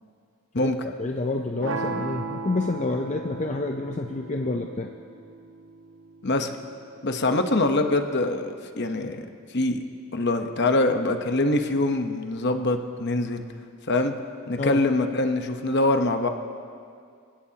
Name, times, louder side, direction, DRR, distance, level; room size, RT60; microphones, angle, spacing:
voice 1, 1.0-4.9 14.6-14.8, left 2 dB, 35° left, 3 dB, 0.5 m, -28 dB
sound 1, 1.6-7.7, right 4 dB, 60° right, 0.8 m, -37 dB
voice 2, 7.0-9.2 9.5-9.8 10.1-13.5 13.9-14.2 14.5-16.3, left 2 dB, 50° left, 6 dB, 0.9 m, -24 dB
27.0 x 16.0 x 2.9 m, 2.3 s
head